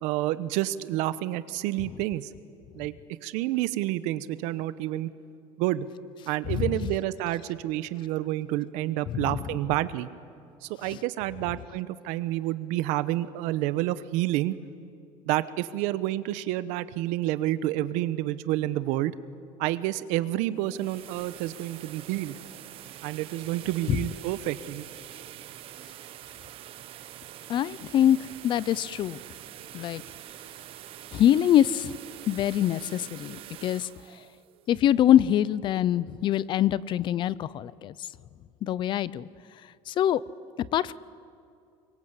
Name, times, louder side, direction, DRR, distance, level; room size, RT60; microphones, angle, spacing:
voice 1, 0.0-2.3 2.7-2.9 3.2-5.1 5.6-5.9 6.3-10.1 10.6-14.5 15.3-19.1 19.6-22.3 23.0-24.8, right 15 dB, 80° right, 15 dB, 1.0 m, -29 dB
Dyson Hand Dryer, 20.5-35.4, right 12 dB, 50° right, 0.9 m, -45 dB
voice 2, 27.5-28.2 28.4-29.2 29.7-30.0 31.1-31.9 32.3-33.9 34.7-37.9 38.6-39.2 39.9-40.2 40.7-40.9, left 11 dB, 40° left, 20 dB, 0.5 m, -24 dB
25.0 x 23.0 x 8.2 m, 2.4 s
cardioid pair, 155°, 12 cm